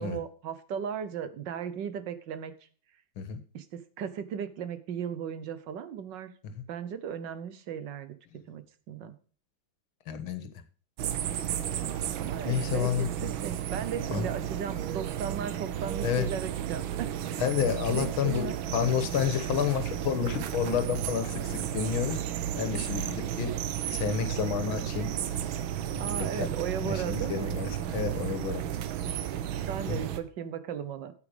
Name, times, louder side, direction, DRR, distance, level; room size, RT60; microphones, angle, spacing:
voice 1, 0.0-2.5 3.5-6.3 6.7-8.2 8.5-9.2 12.2-17.4 17.9-18.5 26.0-27.5 29.6-31.1, right 8 dB, 65° right, 12 dB, 1.5 m, -36 dB
voice 2, 10.1-10.5 12.5-13.1 14.1-14.3 16.0-16.3 17.4-22.2 22.6-23.5 23.9-25.1 25.9-26.5 26.8-28.6 29.9-30.0, left 8 dB, 85° left, 9 dB, 2.0 m, -30 dB
sound 1, 11.0-30.2, right 10 dB, 80° right, 1.6 m, -33 dB
8.8 x 8.4 x 5.0 m, 0.41 s
omnidirectional pair, 2.2 m